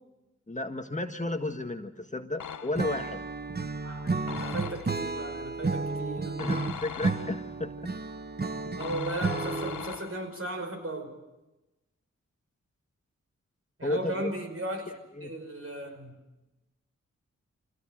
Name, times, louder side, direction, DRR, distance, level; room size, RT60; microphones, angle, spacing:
voice 1, 0.5-3.3 6.4-7.9 13.8-14.3 15.1-15.3, left 2 dB, 25° left, 5 dB, 1.7 m, -33 dB
sound 1, 2.4-3.1 4.3-5.2 6.4-7.6 8.8-10.5, left 8 dB, 75° left, 0.8 m, -40 dB
Acoustic guitar / Strum, 2.8-10.0, right 3 dB, 30° right, 1.1 m, -32 dB
voice 2, 3.8-4.1 4.4-6.4 8.8-11.1 13.8-14.9 15.2-16.1, right 2 dB, 45° right, 4 dB, 5.6 m, -36 dB
26.0 x 17.5 x 7.9 m, 1.0 s
cardioid pair, 40°, 31 cm